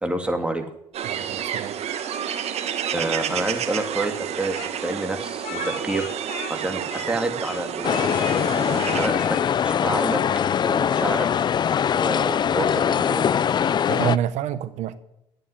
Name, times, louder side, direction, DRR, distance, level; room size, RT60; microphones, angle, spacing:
voice 1, 0.0-0.6 2.9-6.1 6.5-8.0 8.5-10.2 10.6-11.3 11.9-13.2, right 2 dB, 10° right, 5 dB, 2.2 m, -28 dB
sound 1, 0.9-9.1, right 9 dB, 60° right, 1.4 m, -30 dB
voice 2, 1.1-1.7 13.9-15.0, right 11 dB, 80° right, 14 dB, 0.8 m, -27 dB
Speech, 4.5-7.2 7.4-8.4 8.7-9.5, left 7 dB, 85° left, 2.4 m, -37 dB
sound 2, 7.8-14.2, left 8 dB, 40° left, 0.4 m, -22 dB
11.5 x 9.1 x 10.0 m, 0.81 s
cardioid pair, 110°, 12 cm